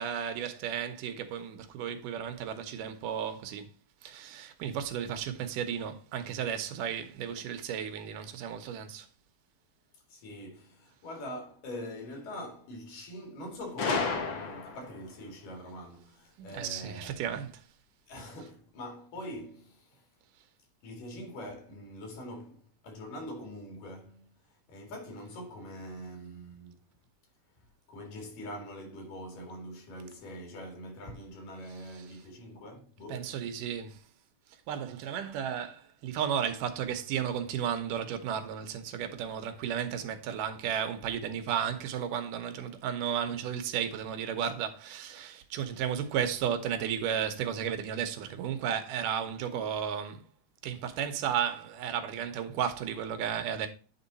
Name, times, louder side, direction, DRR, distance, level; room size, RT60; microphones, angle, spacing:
voice 1, 0.0-3.7 4.0-9.1 16.4-17.6 33.1-34.0 34.7-50.2 50.6-53.7, right 8 dB, 80° right, 2.5 m, -33 dB
voice 2, 10.1-17.2 18.1-20.0 20.8-24.3 24.7-26.8 27.9-33.3, equal, 85° left, 3.9 m, -43 dB
Gunshot gunfire, 13.8-15.0, left 4 dB, 70° left, 1.1 m, -31 dB
9.3 x 3.8 x 4.0 m
omnidirectional pair, 3.7 m